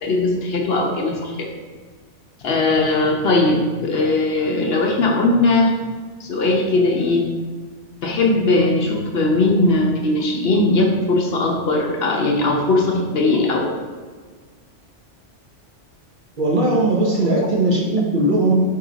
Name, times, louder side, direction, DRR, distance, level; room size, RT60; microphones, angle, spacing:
voice 1, 0.0-1.5 2.4-5.8 6.2-7.2 8.0-13.7, left 2 dB, 60° left, 0 dB, 0.8 m, -19 dB
voice 2, 16.4-18.7, right 2 dB, 50° right, -2 dB, 0.8 m, -18 dB
4.6 x 2.8 x 3.9 m, 1.5 s
omnidirectional pair, 1.2 m